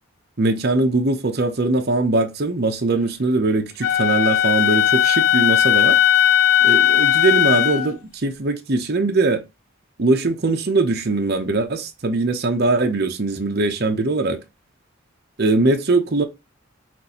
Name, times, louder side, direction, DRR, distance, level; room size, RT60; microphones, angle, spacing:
voice 1, 0.4-6.0 6.6-9.4 10.0-14.4 15.4-16.2, right 3 dB, 50° right, 0.7 m, -21 dB
Wind instrument woodwind instrument, 3.8-7.9, left 10 dB, 85° left, 0.6 m, -17 dB
5.9 x 2.6 x 2.8 m
head